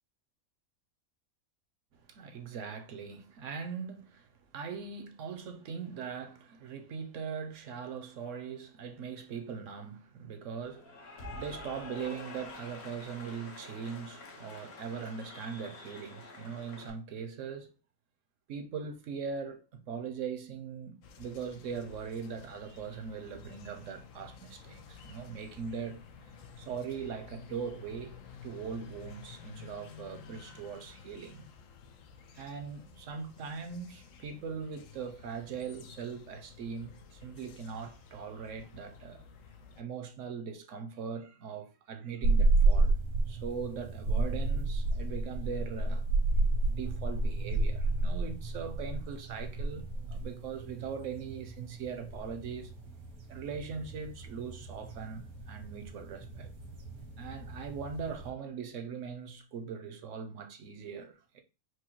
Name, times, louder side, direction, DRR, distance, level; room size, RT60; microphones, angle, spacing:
voice 1, 1.9-17.7 18.5-26.0 26.6-28.1 28.4-31.5 32.3-39.2 39.8-42.9 43.3-46.1 46.7-52.7 53.3-56.5 57.2-61.4, right 6 dB, 65° right, 1.0 m, -40 dB
Cheering / Applause, 10.6-16.9, left 2 dB, 50° left, 1.1 m, -47 dB
sound 1, 21.0-39.8, left 6 dB, 70° left, 0.9 m, -53 dB
sound 2, 42.2-58.3, right 2 dB, 85° right, 1.6 m, -31 dB
4.6 x 2.2 x 4.4 m
omnidirectional pair, 1.5 m